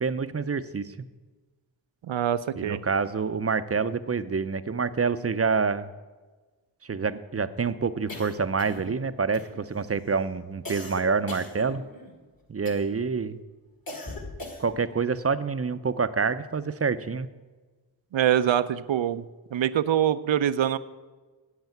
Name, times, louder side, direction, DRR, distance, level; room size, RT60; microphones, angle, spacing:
voice 1, 0.0-1.1 2.6-5.9 6.8-11.9 12.5-13.4 14.6-17.3, right 5 dB, 35° right, 13 dB, 0.5 m, -27 dB
voice 2, 2.0-2.8 18.1-19.2 19.5-20.8, right 10 dB, 85° right, 13 dB, 0.6 m, -24 dB
sound 1, 8.1-9.0 9.3-9.8 10.6-12.1 12.6-13.1 13.9-14.9, left 2 dB, 50° left, 2.1 m, -40 dB
8.1 x 8.1 x 9.0 m, 1.3 s
wide cardioid pair, 70°, 45 cm